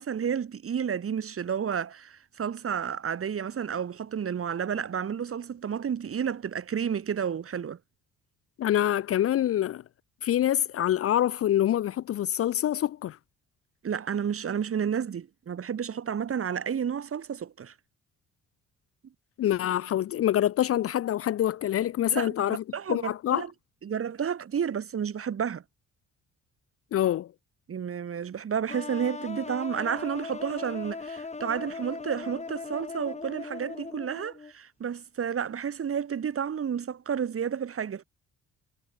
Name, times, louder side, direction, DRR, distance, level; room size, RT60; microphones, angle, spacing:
voice 1, 0.0-7.8 13.8-17.7 22.1-22.3 22.7-23.5 23.8-25.6 27.7-38.0, right 7 dB, 45° right, 2.6 m, -31 dB
voice 2, 8.6-9.8 10.2-13.2 19.4-22.6 22.9-23.4 26.9-27.3, left 12 dB, 50° left, 0.5 m, -26 dB
sound 1, 28.7-34.5, left 4 dB, 20° left, 1.5 m, -39 dB
cardioid pair, 90°, 30 cm